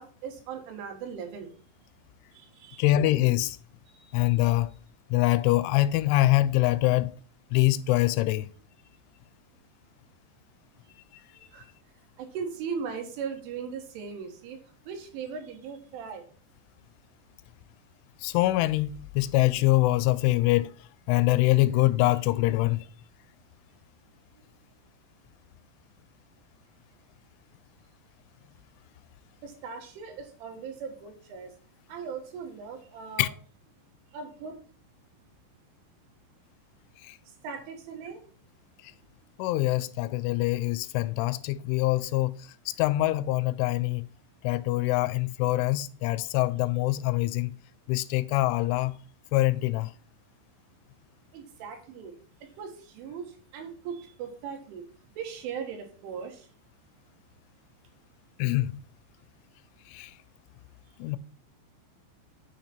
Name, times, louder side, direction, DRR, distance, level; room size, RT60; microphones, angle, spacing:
voice 1, 0.0-1.5 2.4-2.8 3.9-4.3 11.5-11.7 12.2-14.6 14.9-16.2 29.4-31.5 31.9-33.3 34.1-34.5 37.4-38.2 51.3-52.1 52.6-54.8 55.2-56.5, right 6 dB, 85° right, 4.0 m, -38 dB
voice 2, 2.8-3.6 4.1-4.7 5.1-7.2 7.5-8.5 18.2-20.7 21.1-22.9 33.2-33.3 37.0-37.2 39.4-42.3 42.7-44.1 44.4-47.5 47.9-48.9 49.3-49.9 58.4-58.8 59.9-60.1 61.0-61.2, left 17 dB, 85° left, 3.0 m, -24 dB
9.0 x 5.8 x 4.4 m
omnidirectional pair, 5.5 m